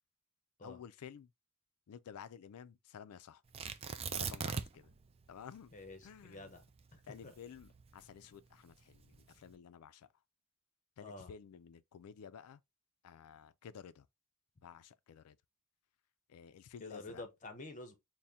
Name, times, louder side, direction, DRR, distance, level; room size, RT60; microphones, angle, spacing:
voice 1, 0.6-1.3 1.9-3.4 4.1-4.9 5.3-5.7 6.0-6.5 7.1-10.1 11.0-12.6 13.0-14.1 14.6-15.4 16.3-17.2, left 7 dB, 75° left, 0.4 m, -53 dB
Tearing, 3.5-4.9 5.2-5.3 5.9-8.2 8.9-9.4, right 6 dB, 25° right, 0.3 m, -40 dB
voice 2, 5.7-6.6 7.2-7.3 11.0-11.3 16.8-18.0, left 2 dB, 35° left, 0.8 m, -48 dB
4.1 x 2.1 x 3.5 m
head